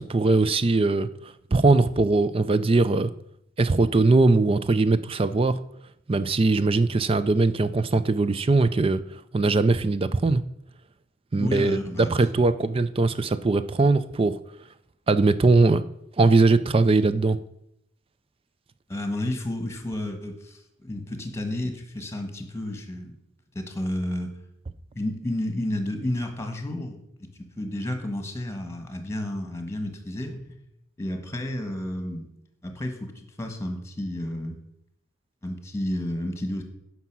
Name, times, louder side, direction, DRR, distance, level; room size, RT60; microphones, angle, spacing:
voice 1, 0.0-3.1 3.6-5.6 6.1-9.0 9.3-10.4 11.3-14.4 15.1-15.8 16.2-17.4, right 3 dB, 30° right, 13 dB, 0.4 m, -21 dB
voice 2, 11.4-12.1 18.9-23.2 23.5-24.3 24.9-27.3 27.6-30.4 31.0-32.3 32.6-34.6 35.4-36.6, left 1 dB, 15° left, 6 dB, 1.5 m, -31 dB
9.5 x 6.0 x 6.0 m, 0.76 s
head